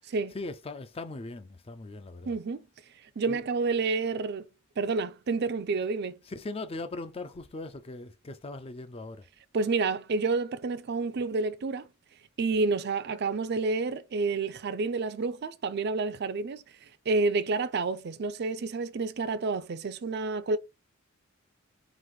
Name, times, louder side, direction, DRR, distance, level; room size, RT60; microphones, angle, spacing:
voice 1, 0.3-2.4 3.3-3.4 6.2-9.3, left 2 dB, 30° left, 0.5 m, -39 dB
voice 2, 2.3-2.6 3.2-4.5 4.8-6.2 9.5-11.9 12.4-20.6, right 3 dB, 55° right, 0.5 m, -29 dB
3.8 x 2.5 x 4.7 m
head